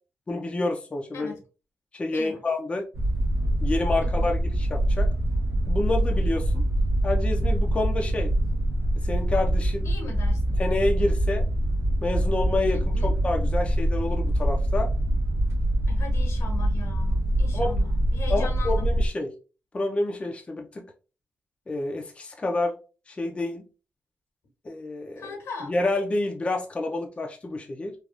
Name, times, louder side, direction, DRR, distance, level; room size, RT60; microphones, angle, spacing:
voice 1, 0.3-1.3 1.9-2.9 3.6-5.1 5.7-6.6 7.0-8.3 9.0-9.9 10.6-11.4 12.0-14.9 17.5-17.7 18.3-19.3 19.7-20.8 21.7-22.7 23.1-23.6 24.6-25.3 25.7-27.9, left 2 dB, 25° left, 2 dB, 0.5 m, -28 dB
sound 1, 2.9-19.1, right 1 dB, 65° right, 0.7 m, -24 dB
voice 2, 4.0-4.4 9.8-10.6 12.7-13.1 15.9-18.9 25.1-25.7, left 4 dB, 80° left, 3 dB, 1.2 m, -40 dB
3.3 x 2.4 x 2.4 m, 0.33 s
cardioid pair, 100°, 5 cm